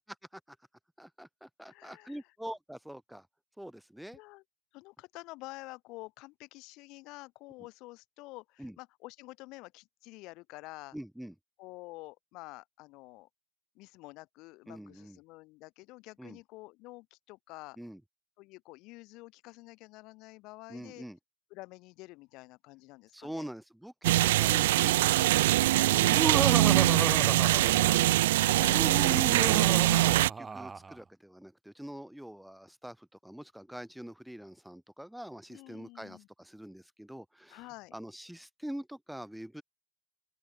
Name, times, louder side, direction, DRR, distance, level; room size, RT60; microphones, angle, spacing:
voice 1, 1.0-3.3 3.6-4.2 8.6-8.8 10.9-11.3 14.7-15.2 16.2-16.4 17.8-18.0 20.7-21.2 23.1-28.9 29.2-39.6, equal, ahead, 7.8 m, -45 dB
voice 2, 1.7-2.2 4.1-4.4 4.7-10.9 11.6-13.3 13.8-17.8 18.4-21.0 21.5-23.4 28.4-28.8 35.5-36.3 37.5-37.9, left 22 dB, 55° left, 4.6 m, -48 dB
sound 1, 24.0-30.3, right 16 dB, 65° right, 0.6 m, -23 dB
Laughter, 26.0-28.1 28.6-30.9, right 4 dB, 20° right, 2.9 m, -33 dB
open air
figure-of-eight pair, 80°, 0 cm